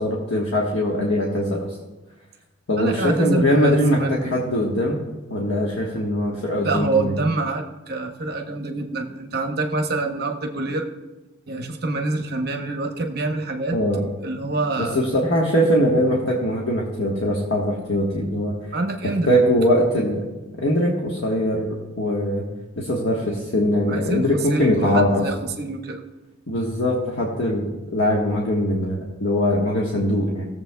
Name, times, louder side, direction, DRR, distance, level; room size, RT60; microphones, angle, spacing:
voice 1, 0.0-1.6 2.7-5.0 5.3-7.2 13.7-14.0 14.8-18.5 19.3-20.2 20.6-22.4 22.8-25.3 26.5-30.5, equal, 70° left, -3 dB, 1.3 m, -21 dB
voice 2, 2.8-4.3 6.6-10.9 11.5-13.8 14.2-15.0 18.7-19.3 23.9-26.0, right 3 dB, 50° right, 4 dB, 0.9 m, -26 dB
18.0 x 7.3 x 2.3 m, 1.1 s
head